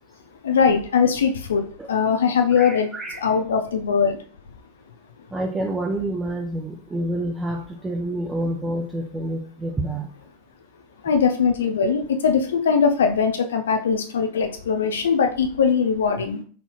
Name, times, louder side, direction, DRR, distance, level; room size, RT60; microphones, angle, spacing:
voice 1, 0.4-2.9 3.2-4.2 11.0-16.4, left 6 dB, 65° left, 5 dB, 0.5 m, -21 dB
voice 2, 2.6-3.2 5.3-10.1, right 1 dB, 15° right, 1 dB, 0.5 m, -28 dB
4.3 x 3.9 x 2.3 m, 0.44 s
figure-of-eight pair, 90°, 0 cm